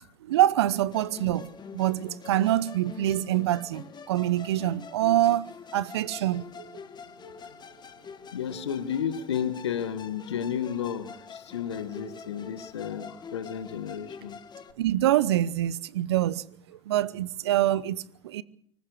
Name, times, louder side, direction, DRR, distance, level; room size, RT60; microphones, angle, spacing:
voice 1, 0.3-5.5 5.7-6.7 14.8-16.4 16.9-18.4, right 13 dB, 75° right, 0.9 m, -25 dB
Musical instrument, 0.9-14.7, left 6 dB, 30° left, 1.6 m, -45 dB
voice 2, 8.3-14.4, left 8 dB, 80° left, 1.7 m, -32 dB
25.0 x 14.5 x 8.1 m
figure-of-eight pair, 70°, 14 cm